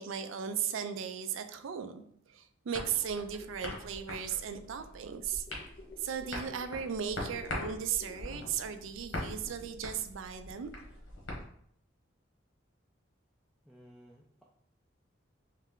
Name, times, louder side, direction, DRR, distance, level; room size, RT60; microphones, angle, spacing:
voice 1, 0.0-2.0 2.3-5.4 6.0-10.7, right 8 dB, 80° right, 10 dB, 0.4 m, -36 dB
sound 1, 2.7-11.4, left 1 dB, 85° left, 1.2 m, -43 dB
sound 2, 2.9-4.7 5.3-8.5, left 3 dB, 45° left, 0.7 m, -52 dB
voice 2, 13.7-14.4, equal, ahead, -4 dB, 0.3 m, -56 dB
3.2 x 3.2 x 3.7 m, 0.67 s
head